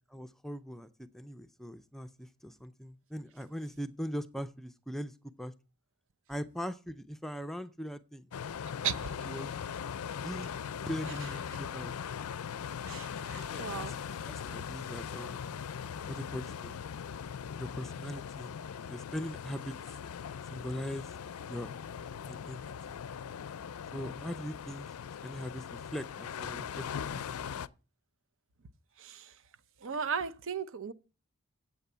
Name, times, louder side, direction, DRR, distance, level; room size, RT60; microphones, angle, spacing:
voice 1, 0.1-0.9 1.1-5.5 6.3-8.3 9.3-9.5 10.1-10.5 10.9-11.9 12.9-15.5 16.1-16.8 17.6-18.5 18.9-19.8 20.5-21.1 21.5-21.7 22.2-22.6 23.9-24.9 25.2-27.6, equal, ahead, 0.4 m, -41 dB
sound 1, 8.3-27.7, left 7 dB, 75° left, 0.4 m, -40 dB
voice 2, 8.8-9.3 12.9-13.9 29.0-29.3 29.8-30.9, right 6 dB, 60° right, 0.6 m, -36 dB
8.2 x 7.1 x 6.7 m
head